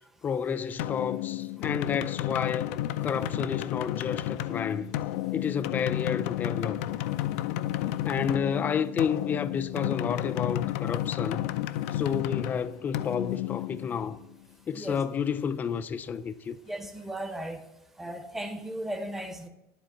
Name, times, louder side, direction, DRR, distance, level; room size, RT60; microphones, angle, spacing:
voice 1, 0.2-2.7 3.0-4.9 5.3-6.8 8.0-11.5 11.9-14.2 14.7-16.6, left 7 dB, 25° left, 0.4 m, -30 dB
sound 1, 0.8-14.3, left 14 dB, 90° left, 0.5 m, -32 dB
voice 2, 16.7-17.6 18.0-19.5, right 1 dB, 5° right, 0.8 m, -36 dB
10.0 x 4.3 x 7.2 m
cardioid pair, 150°, 7 cm